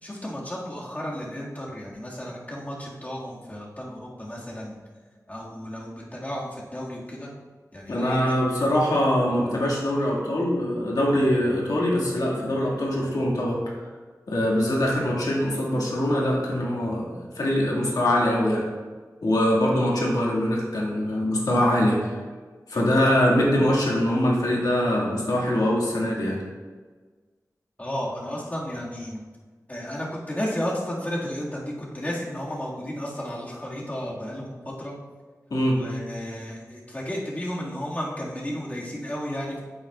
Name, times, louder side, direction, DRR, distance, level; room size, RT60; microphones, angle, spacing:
voice 1, 0.0-4.8 5.3-7.3 7.7-8.2 27.8-29.2 29.7-34.9 35.7-39.6, equal, 25° left, -5 dB, 1.9 m, -33 dB
voice 2, 7.9-13.7 14.3-18.7 19.2-22.2 22.7-26.4 35.5-35.8, left 1 dB, 90° left, -4 dB, 1.9 m, -23 dB
8.7 x 8.4 x 2.4 m, 1.4 s
wide cardioid pair, 70°, 6 cm